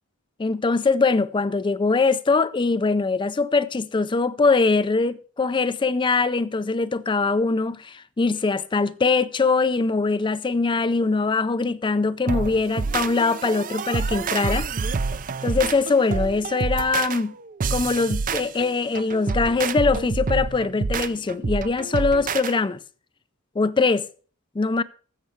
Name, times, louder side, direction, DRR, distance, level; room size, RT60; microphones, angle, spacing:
voice 1, 0.4-14.7 15.4-17.3 17.7-22.8 23.6-24.1 24.6-24.8, left 4 dB, 20° left, 0.4 m, -22 dB
sound 1, 12.3-22.5, right 4 dB, 40° right, 0.5 m, -27 dB
15.5 x 6.7 x 4.6 m
head